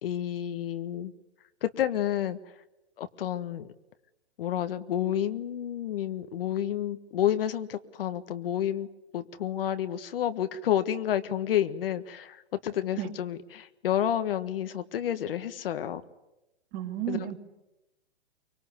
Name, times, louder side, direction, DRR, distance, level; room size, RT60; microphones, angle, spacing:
voice 1, 0.0-1.1 1.6-2.4 3.0-3.7 4.4-8.9 9.1-16.0 17.1-17.3, left 10 dB, 55° left, 11 dB, 1.5 m, -30 dB
voice 2, 16.7-17.3, right 13 dB, 30° right, 4 dB, 2.8 m, -32 dB
24.5 x 23.5 x 9.6 m, 0.93 s
hypercardioid pair, 150°, 33 cm